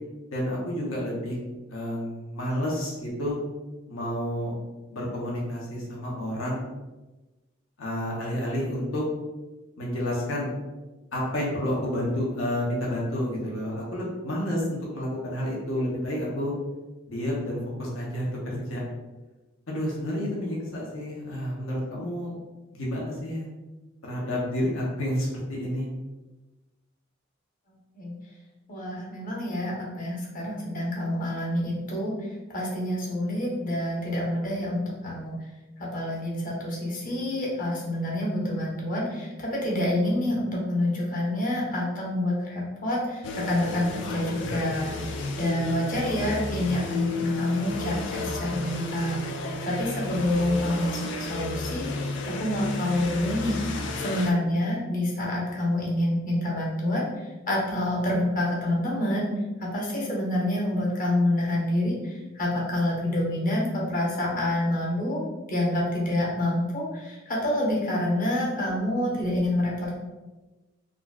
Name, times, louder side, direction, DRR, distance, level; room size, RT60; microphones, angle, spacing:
voice 1, 0.3-1.4 1.7-3.4 3.9-4.5 4.9-6.6 7.8-9.0 9.8-10.5 11.1-16.5 17.1-18.8 19.7-22.4 22.7-23.5 24.0-25.9 53.8-54.1, equal, 90° left, -4 dB, 0.8 m, -30 dB
voice 2, 28.7-32.1 32.5-35.3 35.8-49.2 49.6-57.1 57.5-59.3 59.6-69.9, left 1 dB, 40° left, -4 dB, 0.8 m, -27 dB
sound 1, 43.2-54.3, left 3 dB, 60° left, 0.3 m, -32 dB
3.8 x 2.3 x 2.3 m, 1.1 s
head